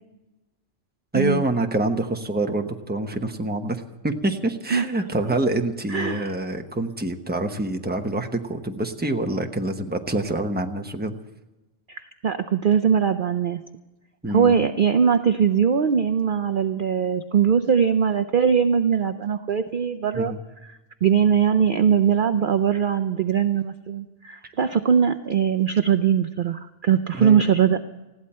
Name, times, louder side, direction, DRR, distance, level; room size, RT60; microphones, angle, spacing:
voice 1, 1.1-11.1 14.2-14.5 20.1-20.4 24.4-24.5 27.2-27.4, right 2 dB, 10° right, 4 dB, 1.0 m, -26 dB
voice 2, 5.9-6.3 11.9-13.6 14.3-20.3 20.6-20.7 21.0-27.8, right 7 dB, 50° right, 9 dB, 0.7 m, -21 dB
20.5 x 15.5 x 4.4 m, 1.1 s
omnidirectional pair, 1.3 m